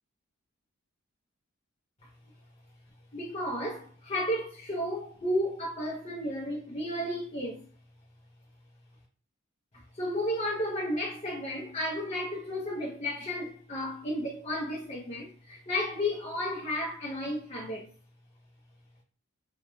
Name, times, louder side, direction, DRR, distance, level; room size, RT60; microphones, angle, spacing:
voice 1, 3.1-7.6 9.7-17.9, left 1 dB, 30° left, 0.5 m, -33 dB
2.3 x 2.1 x 3.0 m
head